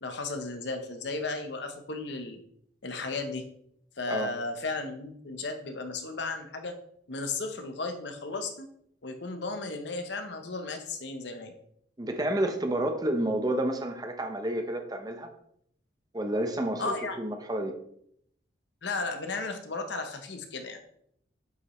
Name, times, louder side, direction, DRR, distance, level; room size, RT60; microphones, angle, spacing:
voice 1, 0.0-2.4 2.8-3.5 4.0-6.7 7.1-8.7 9.0-11.5 16.8-17.2 18.8-20.9, left 3 dB, 70° left, 6 dB, 0.9 m, -35 dB
voice 2, 12.0-15.3 16.1-17.7, right 1 dB, 20° right, 5 dB, 0.7 m, -30 dB
7.9 x 5.2 x 3.1 m, 0.70 s
head